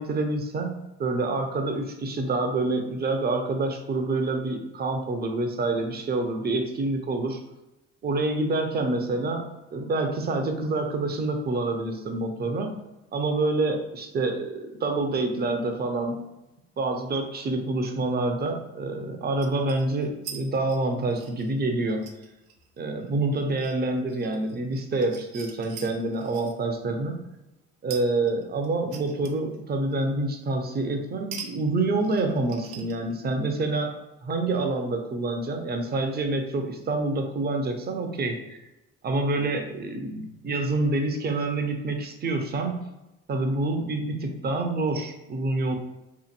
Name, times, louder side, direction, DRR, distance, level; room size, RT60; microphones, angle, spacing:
voice 1, 0.0-7.4 8.0-12.7 13.1-16.2 16.8-22.1 22.8-27.2 27.8-33.9 34.2-38.6 39.0-42.8 43.3-45.8, right 2 dB, 30° right, 4 dB, 0.6 m, -27 dB
sound 1, 17.3-17.4 19.4-20.4 20.7-26.6 27.9-29.6 29.9-30.0 31.3-31.5 31.8-33.3, right 7 dB, 75° right, 0.5 m, -43 dB
2.8 x 2.5 x 2.5 m, 0.95 s
supercardioid pair, 65°, 31 cm